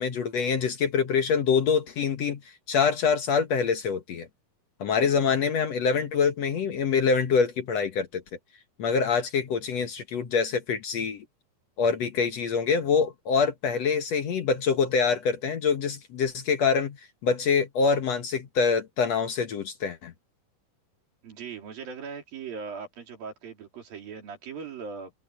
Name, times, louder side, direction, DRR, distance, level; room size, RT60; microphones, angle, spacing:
voice 1, 0.0-4.3 4.8-8.2 8.8-11.3 11.8-20.1, left 5 dB, 60° left, 2.1 m, -25 dB
voice 2, 21.2-25.1, right 6 dB, 85° right, 5.5 m, -39 dB
omnidirectional pair, 4.0 m